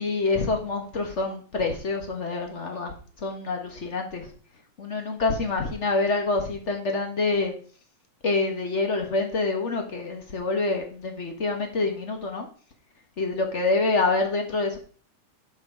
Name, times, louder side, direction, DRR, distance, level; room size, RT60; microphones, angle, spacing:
voice 1, 0.0-2.9 3.2-4.3 4.8-7.5 8.2-12.5 13.2-14.8, left 3 dB, 45° left, 3 dB, 0.9 m, -26 dB
12.0 x 5.1 x 4.9 m, 0.43 s
omnidirectional pair, 3.5 m